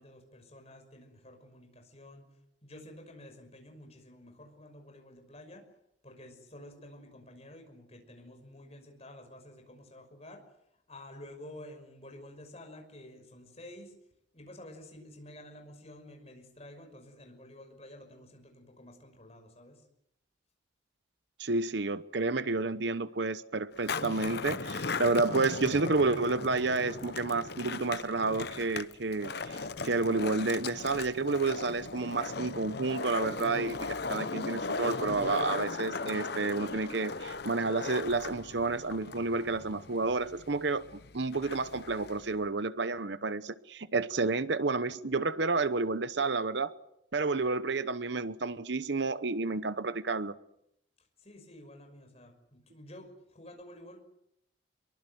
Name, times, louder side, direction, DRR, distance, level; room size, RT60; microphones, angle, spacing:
voice 1, 0.0-2.3 2.6-5.6 6.0-10.4 10.9-13.9 14.3-19.8 51.0-54.0, left 1 dB, 30° left, 4 dB, 5.8 m, -50 dB
voice 2, 21.4-46.7 47.1-50.3, right 3 dB, 60° right, 14 dB, 0.9 m, -30 dB
Skateboard, 23.7-42.4, left 4 dB, 55° left, 0.9 m, -38 dB
24.5 x 23.0 x 7.9 m, 0.78 s
head